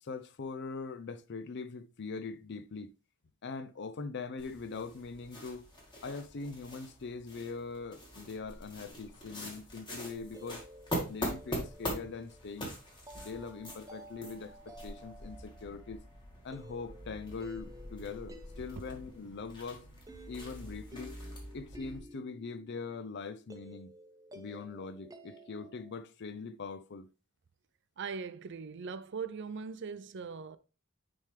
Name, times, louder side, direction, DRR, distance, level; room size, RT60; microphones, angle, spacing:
voice 1, 0.0-2.9 3.4-5.7 6.0-10.6 11.1-12.7 13.1-16.0 16.4-19.9 20.3-21.2 21.5-23.9 24.3-27.1, left 4 dB, 50° left, 0.5 m, -42 dB
sound 1, 4.4-22.0, equal, 20° left, 1.7 m, -44 dB
sound 2, 10.1-26.0, equal, 15° right, 0.7 m, -54 dB
voice 2, 28.0-30.6, right 5 dB, 55° right, 0.5 m, -40 dB
9.6 x 3.4 x 3.3 m
head